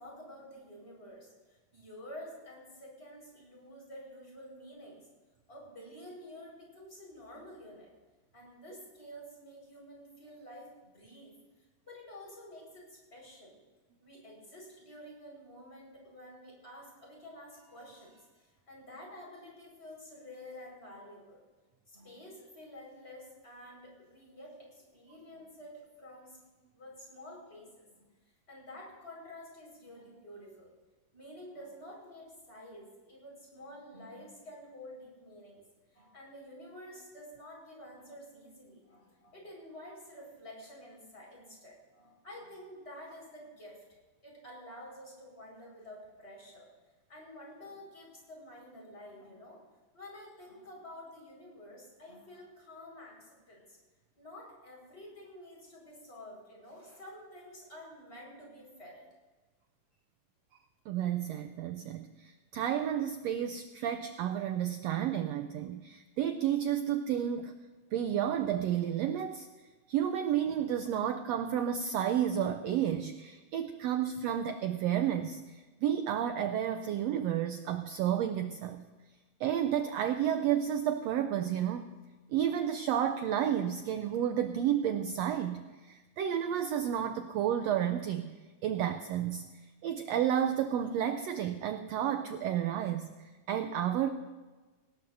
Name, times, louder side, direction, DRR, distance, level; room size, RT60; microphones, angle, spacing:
voice 1, 0.0-5.1 5.5-7.9 8.3-11.3 11.8-13.6 14.0-21.4 21.9-26.4 26.7-28.1 28.5-30.7 31.1-35.6 35.9-43.8 44.2-46.7 47.1-49.6 49.9-53.8 54.2-59.0, left 1 dB, 20° left, -2 dB, 5.2 m, -50 dB
voice 2, 60.9-67.5 67.9-69.5 69.9-78.8 79.4-81.9 82.3-88.3 88.6-89.5 89.8-94.1, right 10 dB, 80° right, 7 dB, 1.5 m, -31 dB
18.5 x 18.0 x 2.7 m, 1.2 s
omnidirectional pair, 3.6 m